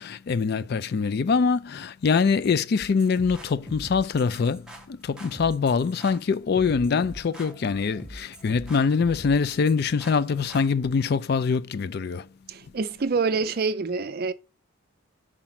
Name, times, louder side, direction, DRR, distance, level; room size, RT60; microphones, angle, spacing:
voice 1, 0.0-4.6 5.1-12.2, left 5 dB, 50° left, 0.3 m, -24 dB
sound 1, 2.8-10.7, right 1 dB, 5° right, 0.9 m, -43 dB
voice 2, 12.5-14.3, right 4 dB, 45° right, 0.4 m, -26 dB
5.0 x 4.4 x 5.7 m
head